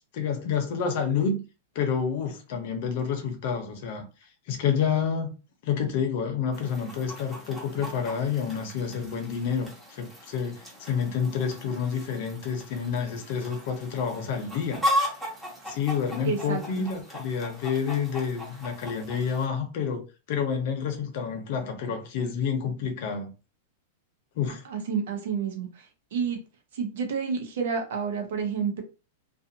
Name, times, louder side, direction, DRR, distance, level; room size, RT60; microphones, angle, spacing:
voice 1, 0.1-1.4 1.7-4.1 4.5-5.3 5.6-14.8 15.7-20.0 20.3-23.3 24.3-24.6, left 6 dB, 55° left, 0.7 m, -29 dB
Chicken rooster, 6.5-19.5, equal, 5° right, 1.0 m, -36 dB
voice 2, 16.3-16.9 24.7-26.4 26.7-28.8, right 6 dB, 70° right, 0.9 m, -30 dB
2.5 x 2.4 x 2.7 m
supercardioid pair, 140°, 0 cm